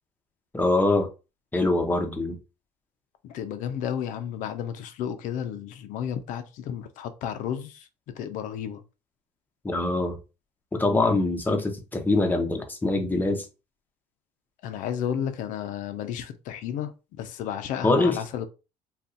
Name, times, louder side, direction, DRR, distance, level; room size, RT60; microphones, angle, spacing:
voice 1, 0.5-1.1 1.5-2.4 9.6-10.2 10.7-13.5 17.8-18.2, left 2 dB, 15° left, 0.7 m, -23 dB
voice 2, 3.2-7.9 8.2-8.8 14.6-18.5, left 9 dB, 70° left, 0.5 m, -32 dB
2.6 x 2.3 x 3.6 m
cardioid pair, 105°, 14 cm